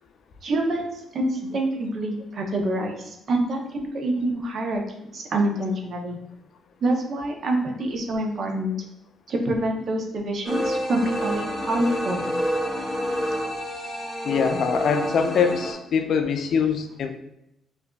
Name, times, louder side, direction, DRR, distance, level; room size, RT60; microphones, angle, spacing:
voice 1, 0.4-6.2 6.8-8.7 9.3-12.2, right 1 dB, 55° right, 2 dB, 0.7 m, -26 dB
sound 1, 10.4-15.7, equal, 10° right, 1.4 m, -28 dB
voice 2, 14.2-17.1, left 6 dB, 65° left, 7 dB, 0.4 m, -23 dB
4.9 x 2.6 x 2.3 m, 0.83 s
cardioid pair, 90°, 0 cm